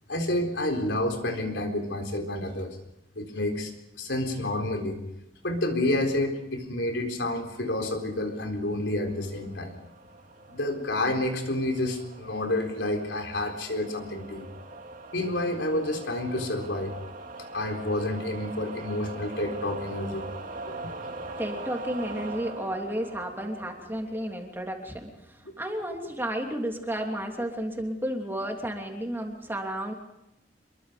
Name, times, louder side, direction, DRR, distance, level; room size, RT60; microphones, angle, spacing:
voice 1, 0.1-2.8 3.1-5.0 5.4-9.7 10.5-14.5 15.1-17.0 17.5-20.2 20.7-20.8 21.0-21.1, left 1 dB, 80° left, 3 dB, 4.2 m, -29 dB
sound 1, 8.1-24.6, right 2 dB, 50° right, 2.4 m, -42 dB
voice 2, 21.2-29.9, equal, 15° right, 2 dB, 3.1 m, -32 dB
27.0 x 22.5 x 5.2 m, 0.87 s
head